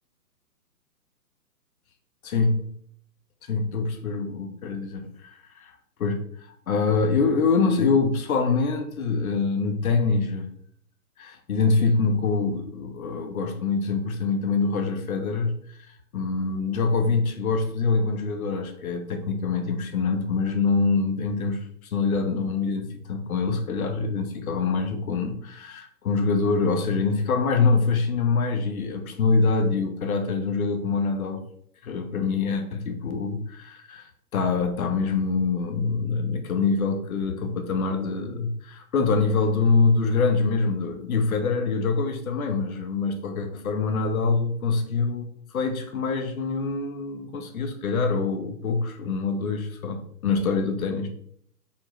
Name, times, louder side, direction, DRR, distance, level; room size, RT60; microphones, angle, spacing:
voice 1, 2.2-2.7 3.5-10.5 11.2-31.4 31.8-45.2 45.5-51.1, left 4 dB, 60° left, 5 dB, 1.4 m, -25 dB
5.9 x 4.6 x 4.4 m, 0.65 s
hypercardioid pair, 145°, 49 cm